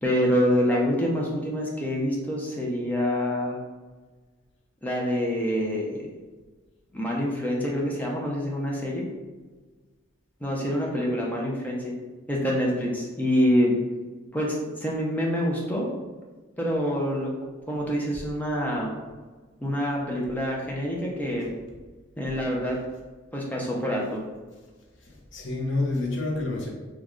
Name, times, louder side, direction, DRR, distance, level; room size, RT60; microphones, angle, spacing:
voice 1, 0.0-3.6 4.8-6.1 6.9-9.1 10.4-11.9 12.3-13.8 14.3-15.9 16.6-17.3 17.7-18.9 19.6-21.5 22.2-22.8 23.3-24.2, equal, 10° left, -3 dB, 0.6 m, -26 dB
voice 2, 25.1-26.7, left 2 dB, 65° left, -1 dB, 0.8 m, -28 dB
3.1 x 2.3 x 3.7 m, 1.3 s
head